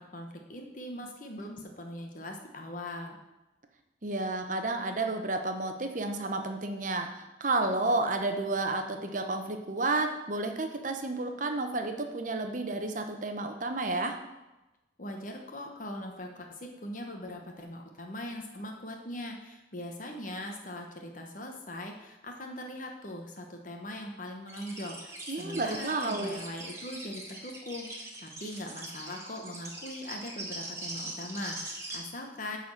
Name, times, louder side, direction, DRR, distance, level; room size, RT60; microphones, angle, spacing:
voice 1, 0.0-3.2 15.0-32.6, left 1 dB, 45° left, 3 dB, 1.0 m, -41 dB
voice 2, 4.0-14.2 25.3-26.4, right 2 dB, 40° right, 5 dB, 0.9 m, -31 dB
sound 1, 24.5-32.0, right 2 dB, 15° right, 1.4 m, -41 dB
9.3 x 4.2 x 7.3 m, 1.0 s
head